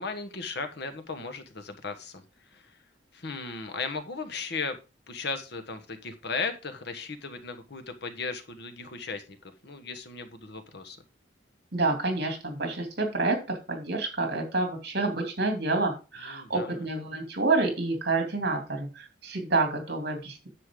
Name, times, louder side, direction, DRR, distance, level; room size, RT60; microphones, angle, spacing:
voice 1, 0.0-2.2 2.5-2.8 3.1-4.8 5.1-11.0 16.2-16.8, left 4 dB, 65° left, 8 dB, 1.4 m, -36 dB
voice 2, 11.7-20.5, right 3 dB, 60° right, 4 dB, 2.8 m, -28 dB
10.0 x 6.8 x 3.8 m, 0.30 s
head